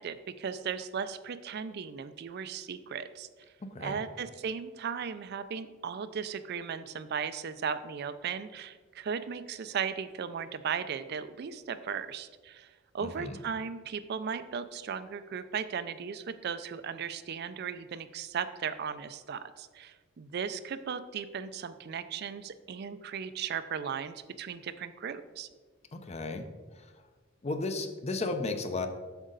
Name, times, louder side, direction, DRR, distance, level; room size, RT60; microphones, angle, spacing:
voice 1, 0.0-3.3 3.8-25.5, right 7 dB, 50° right, 12 dB, 0.4 m, -36 dB
voice 2, 3.6-4.0 13.0-13.4 25.9-26.5 26.7-26.9 27.4-28.9, left 3 dB, 30° left, 8 dB, 0.6 m, -34 dB
8.0 x 6.2 x 3.9 m, 1.4 s
head